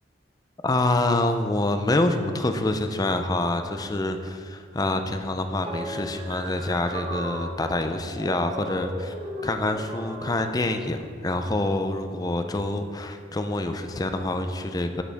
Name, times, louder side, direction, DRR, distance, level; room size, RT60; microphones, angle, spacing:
voice 1, 0.6-9.1 9.4-15.0, left 2 dB, 20° left, 7 dB, 0.4 m, -26 dB
sound 1, 5.6-10.9, right 1 dB, 30° right, 0.9 m, -36 dB
8.6 x 8.3 x 3.5 m, 2.2 s
head